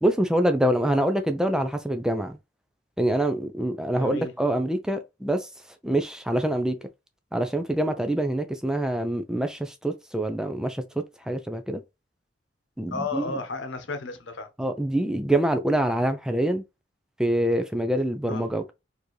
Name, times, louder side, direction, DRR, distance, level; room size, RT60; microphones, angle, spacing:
voice 1, 0.0-2.4 3.0-5.5 5.8-6.8 7.3-11.8 12.8-13.3 14.6-16.6 17.2-18.7, right 1 dB, 5° right, 0.4 m, -25 dB
voice 2, 3.9-4.3 12.9-14.5 18.2-18.4, left 3 dB, 85° left, 1.0 m, -33 dB
4.4 x 2.8 x 3.1 m
head